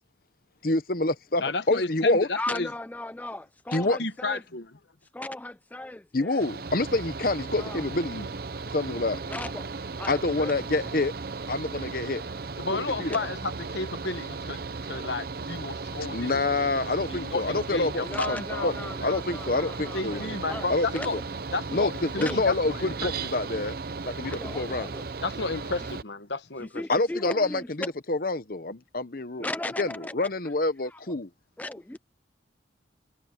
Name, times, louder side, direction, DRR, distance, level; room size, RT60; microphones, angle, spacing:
voice 1, 0.6-2.3 3.7-4.0 6.1-8.3 8.7-9.2 10.1-11.1 11.5-12.2 12.7-13.2 16.1-18.7 19.0-20.3 20.7-20.9 21.1-21.2 21.7-23.8 24.1-24.9 26.9-29.5 29.8-31.3, left 2 dB, 50° left, 1.0 m, -27 dB
voice 2, 1.4-2.7 4.0-4.8 12.6-16.5 17.1-19.1 19.9-21.2 21.5-23.1 25.2-26.8, left 3 dB, 65° left, 1.3 m, -32 dB
voice 3, 2.3-4.4 5.1-6.4 7.6-7.8 9.2-9.7 10.0-10.5 13.1-13.2 18.0-20.7 20.9-21.1 22.2-22.4 24.2-25.1 26.6-27.9 29.4-30.3 30.9-31.0 31.6-32.0, left 2 dB, 10° left, 0.3 m, -36 dB
Mechanical fan, 6.4-26.0, right 4 dB, 50° right, 0.7 m, -36 dB
head